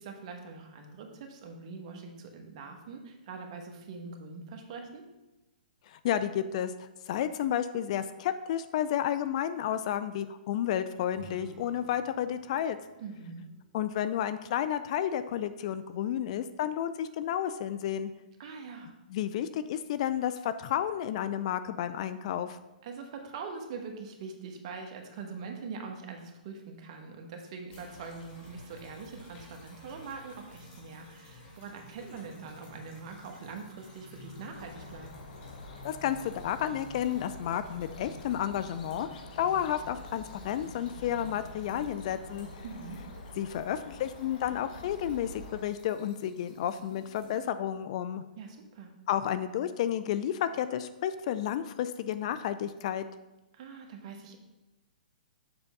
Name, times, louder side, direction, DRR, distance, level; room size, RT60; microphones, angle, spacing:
voice 1, 0.0-5.0 13.0-13.4 18.4-18.9 22.8-35.1 42.6-43.0 48.3-48.9 53.5-54.4, right 4 dB, 45° right, 3 dB, 1.2 m, -43 dB
voice 2, 5.9-12.8 13.7-18.1 19.1-22.6 35.8-42.5 43.4-48.2 49.1-53.0, left 10 dB, 45° left, 12 dB, 0.3 m, -31 dB
sound 1, 11.1-14.8, right 6 dB, 20° right, 0.6 m, -55 dB
sound 2, 27.7-47.4, left 1 dB, 30° left, 2.3 m, -52 dB
sound 3, 34.5-45.6, left 2 dB, 65° left, 1.1 m, -47 dB
6.9 x 3.4 x 5.3 m, 1.0 s
hypercardioid pair, 150°, 5 cm